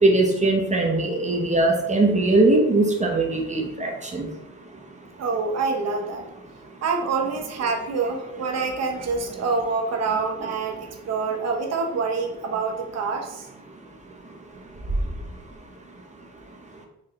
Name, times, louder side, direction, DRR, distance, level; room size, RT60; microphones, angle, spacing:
voice 1, 0.0-4.3, right 2 dB, 25° right, 1 dB, 0.6 m, -20 dB
voice 2, 5.2-6.3 6.8-13.5, right 4 dB, 60° right, 3 dB, 0.9 m, -26 dB
4.0 x 3.1 x 2.7 m, 0.86 s
cardioid pair, 90°, 30 cm